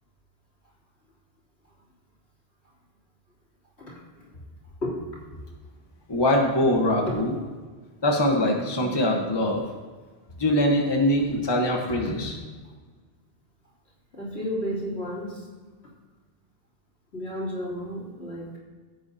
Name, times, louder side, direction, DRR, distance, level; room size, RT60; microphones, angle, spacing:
voice 1, 3.9-4.3 4.8-5.1 7.1-7.2 12.0-12.1 14.1-15.5 17.1-18.6, equal, 80° left, -6 dB, 3.9 m, -32 dB
voice 2, 6.1-7.3 8.0-9.6 10.4-12.3, left 1 dB, 25° left, 1 dB, 1.2 m, -23 dB
16.0 x 8.8 x 2.8 m, 1.4 s
omnidirectional pair, 1.1 m